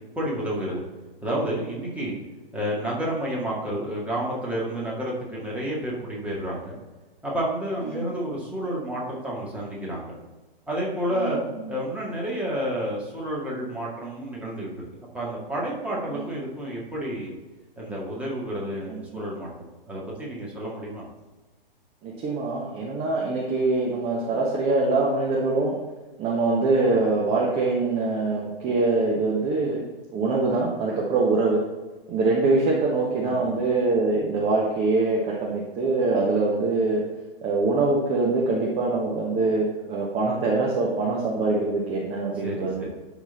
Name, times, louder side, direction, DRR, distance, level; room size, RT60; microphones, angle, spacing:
voice 1, 0.1-0.8 1.2-2.2 2.5-6.8 7.2-10.1 10.7-11.4 11.7-14.8 15.1-17.3 17.8-19.5 19.9-21.0 33.2-33.6 42.4-42.9, right 1 dB, 5° right, -5 dB, 2.0 m, -30 dB
voice 2, 18.9-19.2 22.0-25.7 26.2-29.8 30.1-31.6 32.1-37.0 37.4-42.9, right 3 dB, 20° right, -3 dB, 1.2 m, -24 dB
11.5 x 4.1 x 4.1 m, 1.2 s
figure-of-eight pair, 110°, 29 cm